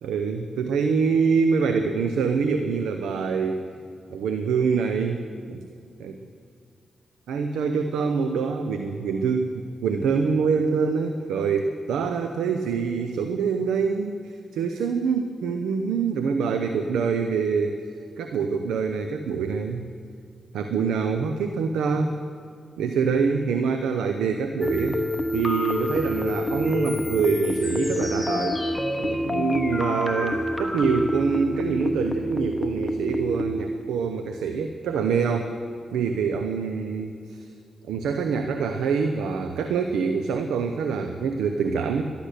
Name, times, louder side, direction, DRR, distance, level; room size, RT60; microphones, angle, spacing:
voice 1, 0.0-3.6 4.1-5.2 5.5-5.6 6.0-6.2 7.3-17.8 18.2-19.9 20.5-22.1 22.8-25.0 25.3-28.6 29.0-35.5 35.9-37.5 37.9-42.0, right 5 dB, 90° right, 6 dB, 0.7 m, -25 dB
sound 1, 24.6-33.9, left 1 dB, 20° left, 1.3 m, -27 dB
12.0 x 11.5 x 6.6 m, 2.4 s
supercardioid pair, 55°, 0 cm